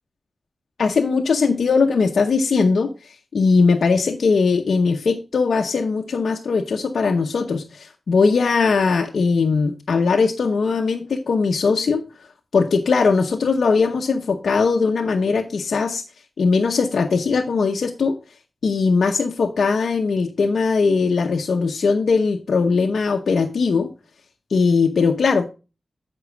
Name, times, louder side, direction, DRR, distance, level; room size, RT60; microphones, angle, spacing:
voice 1, 0.8-12.0 12.5-16.0 16.4-18.2 18.6-23.9 24.5-25.5, left 4 dB, 85° left, 2 dB, 0.8 m, -20 dB
8.3 x 5.4 x 4.8 m, 0.31 s
cardioid pair, 50°, 0 cm